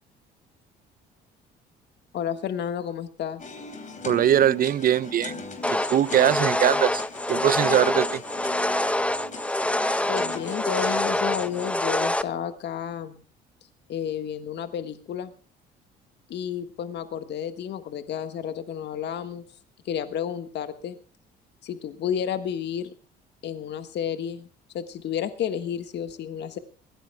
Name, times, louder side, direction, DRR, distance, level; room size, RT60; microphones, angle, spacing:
voice 1, 2.1-3.4 10.1-13.2 13.9-15.3 16.3-19.4 19.8-21.0 21.6-22.9 23.4-24.5 24.7-26.6, left 9 dB, 60° left, 8 dB, 1.6 m, -31 dB
sound 1, 3.4-11.7, left 3 dB, 40° left, 3.4 m, -39 dB
voice 2, 4.0-5.3 5.9-7.0 7.3-8.2, right 10 dB, 45° right, 20 dB, 0.6 m, -21 dB
sound 2, 5.6-12.2, left 1 dB, 5° left, 0.7 m, -26 dB
22.5 x 17.0 x 2.3 m, 0.42 s
supercardioid pair, 90°, 20 cm